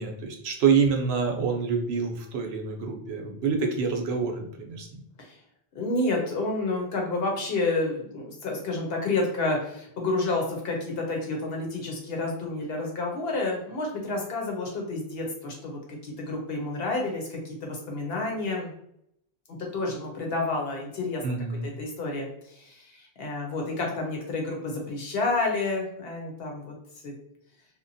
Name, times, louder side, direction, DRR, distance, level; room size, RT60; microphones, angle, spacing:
voice 1, 0.0-5.0 21.2-21.7, right 5 dB, 80° right, 2 dB, 0.8 m, -27 dB
voice 2, 5.7-18.7 19.7-21.2 21.8-26.7 27.0-27.1, left 2 dB, 70° left, 0 dB, 0.9 m, -30 dB
2.9 x 2.1 x 2.6 m, 0.73 s
omnidirectional pair, 1.1 m